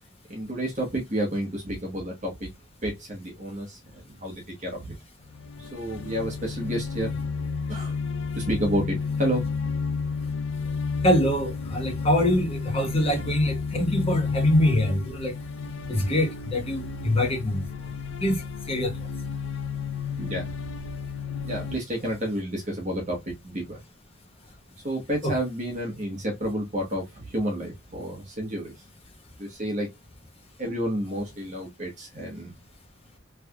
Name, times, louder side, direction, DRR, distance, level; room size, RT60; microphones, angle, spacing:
voice 1, 0.3-2.5 2.8-4.9 5.6-7.1 7.7-7.9 8.3-9.4 20.2-20.5 21.4-23.8 24.8-28.7 29.4-29.9 30.6-32.5, equal, 35° right, 1.2 m, -30 dB
sound 1, 5.2-21.8, left 5 dB, 80° left, 0.5 m, -31 dB
voice 2, 11.0-15.3 15.9-17.6 18.2-19.1 25.2-25.3, equal, 30° left, 1.0 m, -24 dB
3.3 x 3.2 x 2.2 m
head